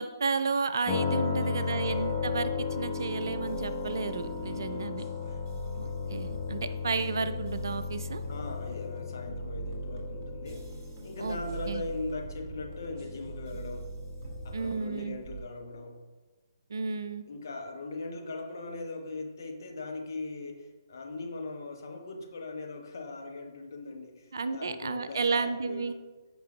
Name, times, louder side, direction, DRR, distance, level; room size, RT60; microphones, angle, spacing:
voice 1, 0.0-5.1 5.8-8.2 11.2-11.4 11.7-11.8 14.5-15.2 16.7-17.2 24.3-25.9, right 4 dB, 55° right, 11 dB, 0.6 m, -32 dB
sound 1, 0.9-14.7, left 6 dB, 15° left, 1.3 m, -36 dB
voice 2, 1.2-2.2 4.3-6.1 8.3-10.7 11.0-13.9 14.4-16.0 17.2-26.0, left 3 dB, 50° left, 2 dB, 1.4 m, -40 dB
sound 2, 1.8-15.4, right 4 dB, 30° right, 1.9 m, -42 dB
14.5 x 5.5 x 2.5 m, 1.3 s
figure-of-eight pair, 135°, 2 cm